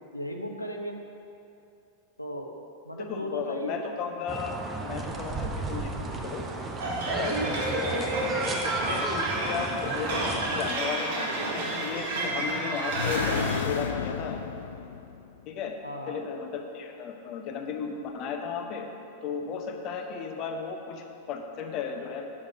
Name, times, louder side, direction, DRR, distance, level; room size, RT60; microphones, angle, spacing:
voice 1, 0.1-1.0 2.2-2.5 2.8-3.8 7.4-8.1 15.8-16.2, equal, 90° left, 2 dB, 0.8 m, -36 dB
voice 2, 3.0-4.6 4.8-6.4 7.0-7.4 7.8-8.2 8.6-14.4 15.5-15.7 16.1-18.9 19.2-22.3, left 6 dB, 40° left, 4 dB, 0.8 m, -35 dB
sound 1, 4.3-10.7, right 3 dB, 20° right, 0.8 m, -34 dB
sound 2, 6.8-13.6, right 2 dB, 55° right, 1.5 m, -30 dB
sound 3, 12.9-15.5, left 7 dB, 60° left, 0.4 m, -32 dB
7.3 x 6.6 x 4.9 m, 2.7 s
figure-of-eight pair, 90°, 0 cm